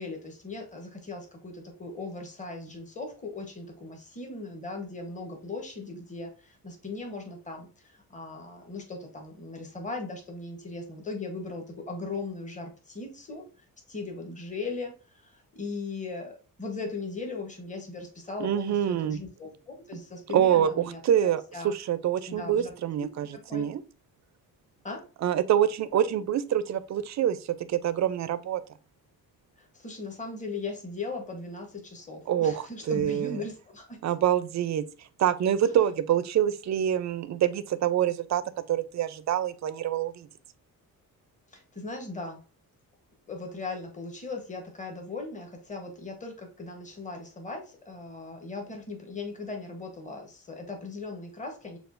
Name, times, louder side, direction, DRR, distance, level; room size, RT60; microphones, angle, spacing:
voice 1, 0.0-13.4 13.9-21.7 22.3-23.1 23.3-23.7 24.8-25.0 29.6-34.0 35.6-35.8 41.5-42.4 43.3-51.8, left 3 dB, 20° left, 1.0 m, -38 dB
voice 2, 18.4-19.2 20.3-23.3 23.5-23.8 25.2-27.4 27.7-28.6 32.3-33.3 34.0-34.8 35.2-38.4 38.7-40.3, right 10 dB, 50° right, 0.4 m, -26 dB
6.7 x 2.3 x 2.5 m
wide cardioid pair, 145°, 35 cm